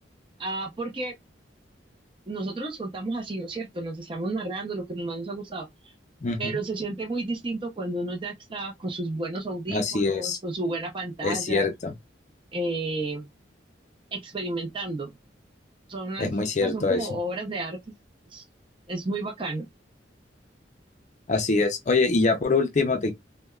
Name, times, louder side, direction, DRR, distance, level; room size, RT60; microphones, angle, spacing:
voice 1, 0.4-1.1 2.3-5.9 6.4-11.7 12.5-13.3 14.1-15.1 15.9-16.3 16.6-17.8 18.3-18.4 18.9-19.6, right 2 dB, 30° right, 0.6 m, -32 dB
voice 2, 6.2-6.6 9.7-10.4 11.2-11.9 16.2-17.1 21.3-23.1, left 3 dB, 40° left, 0.5 m, -24 dB
3.3 x 2.1 x 2.3 m
head